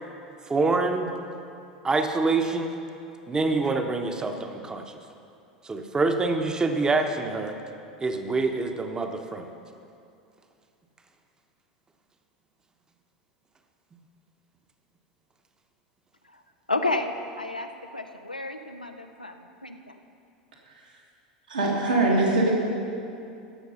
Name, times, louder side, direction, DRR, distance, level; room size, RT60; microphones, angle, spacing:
voice 1, 0.5-1.1 1.8-2.7 3.3-4.8 5.6-7.5 8.0-9.5, right 3 dB, 15° right, 5 dB, 1.0 m, -26 dB
voice 2, 16.7-20.0, left 2 dB, 90° left, 6 dB, 0.7 m, -31 dB
voice 3, 21.5-22.5, right 2 dB, 80° right, -4 dB, 2.5 m, -22 dB
16.5 x 6.5 x 5.6 m, 2.6 s
figure-of-eight pair, 85°, 4 cm